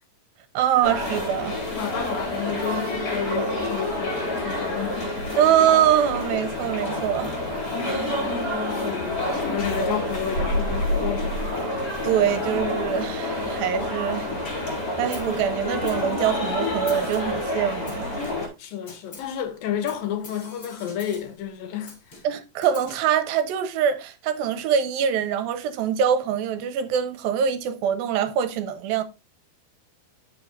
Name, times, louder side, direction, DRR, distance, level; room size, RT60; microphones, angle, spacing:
voice 1, 0.5-1.6 5.4-7.3 7.8-8.2 12.0-14.3 15.0-18.2 22.2-29.0, right 9 dB, 80° right, 2.3 m, -24 dB
sound 1, 0.8-18.5, left 1 dB, 45° left, 5.1 m, -28 dB
voice 2, 1.7-5.2 7.9-8.0 8.3-8.5 8.8-11.3 18.6-22.2, left 9 dB, 75° left, 2.5 m, -31 dB
Snare drum, 15.1-15.4 15.9-16.6 16.9-17.4 17.9-18.6 18.9-19.4 19.9-21.4 21.9-23.1, left 2 dB, 30° left, 5.0 m, -45 dB
13.0 x 5.5 x 2.6 m
omnidirectional pair, 4.5 m